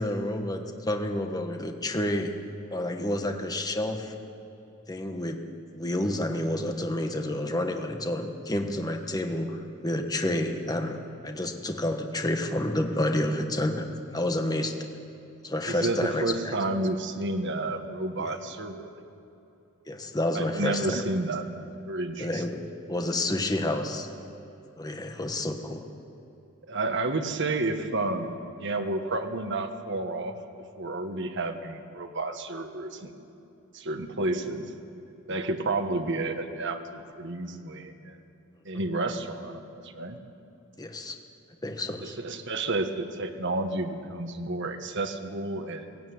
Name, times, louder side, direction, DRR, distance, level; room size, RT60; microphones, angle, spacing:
voice 1, 0.0-2.3 2.7-4.1 4.9-5.4 5.7-14.8 15.4-16.5 18.2-18.3 19.9-21.0 22.2-22.6 22.9-24.1 24.8-25.8 40.8-41.2 41.6-42.2, left 1 dB, 20° left, 5 dB, 1.3 m, -29 dB
voice 2, 15.6-18.9 20.3-22.4 26.7-30.4 30.8-33.1 33.7-34.7 35.3-38.2 38.6-40.2 42.0-45.8, right 2 dB, 60° right, 6 dB, 1.5 m, -31 dB
17.0 x 17.0 x 9.4 m, 2.8 s
head